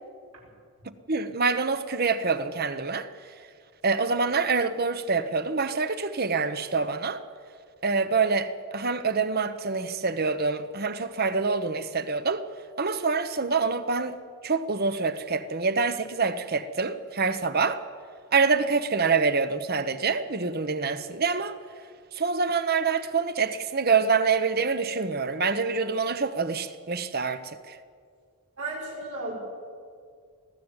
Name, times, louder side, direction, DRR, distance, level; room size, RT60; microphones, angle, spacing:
voice 1, 1.1-3.1 3.8-7.2 7.8-12.4 12.8-14.1 14.4-17.8 18.3-21.6 22.1-27.8, right 4 dB, 45° right, 1.0 m, -26 dB
voice 2, 28.6-29.4, right 2 dB, 90° right, 5.7 m, -34 dB
21.5 x 14.5 x 9.0 m
head